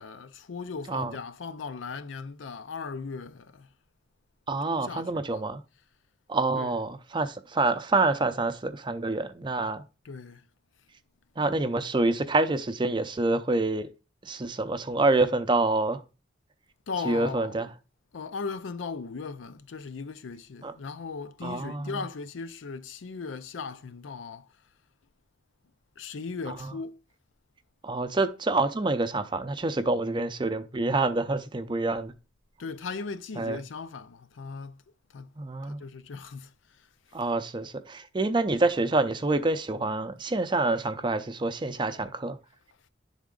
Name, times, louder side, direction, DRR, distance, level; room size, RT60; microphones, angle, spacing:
voice 1, 0.0-3.7 4.6-5.4 6.5-6.7 10.0-10.4 16.9-17.7 18.1-24.5 26.0-27.0 32.6-34.8 35.1-35.3 35.7-36.5, left 4 dB, 85° left, 0.5 m, -38 dB
voice 2, 4.5-5.6 6.3-9.8 11.4-13.9 14.2-16.0 17.0-17.7 20.6-20.7 21.4-22.0 27.8-32.1 33.4-33.6 35.4-35.8 37.1-42.4, right 2 dB, 25° right, 0.5 m, -27 dB
10.5 x 3.6 x 3.7 m
head